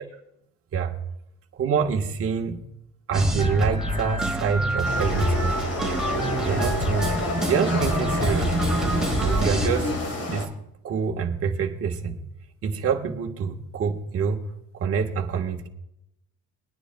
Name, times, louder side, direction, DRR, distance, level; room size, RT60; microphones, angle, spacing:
voice 1, 1.6-2.6 3.1-5.6 6.4-8.5 9.2-9.9 10.3-10.5 10.8-12.2 12.6-14.5 14.7-15.7, right 6 dB, 45° right, 2 dB, 1.3 m, -26 dB
sound 1, 3.1-9.7, right 1 dB, ahead, 1.8 m, -26 dB
sound 2, 4.8-10.5, left 2 dB, 50° left, 2.1 m, -29 dB
23.0 x 10.0 x 2.2 m, 0.81 s
cardioid pair, 140°, 31 cm